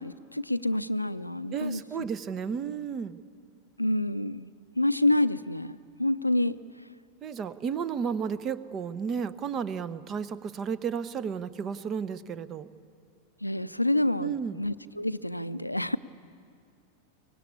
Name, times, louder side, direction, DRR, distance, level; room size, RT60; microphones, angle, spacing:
voice 1, 0.0-1.8 3.8-4.5 4.8-5.7 6.0-6.6 13.4-16.0, left 1 dB, 85° left, 14 dB, 0.5 m, -27 dB
voice 2, 1.5-3.2 7.2-12.7 14.2-14.6, right 7 dB, 30° right, 16 dB, 0.9 m, -33 dB
23.5 x 19.0 x 8.6 m, 2.4 s
figure-of-eight pair, 90°, 0 cm